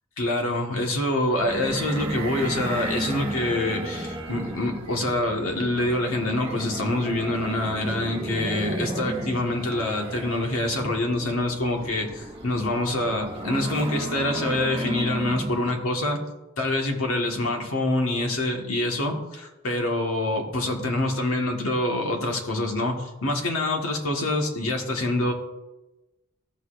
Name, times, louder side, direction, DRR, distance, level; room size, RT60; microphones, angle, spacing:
voice 1, 0.2-16.2 16.6-25.3, left 1 dB, 80° left, 1 dB, 1.6 m, -26 dB
sound 1, 1.3-15.8, right 1 dB, 25° right, 1.1 m, -34 dB
15.5 x 6.6 x 2.6 m, 1.1 s
head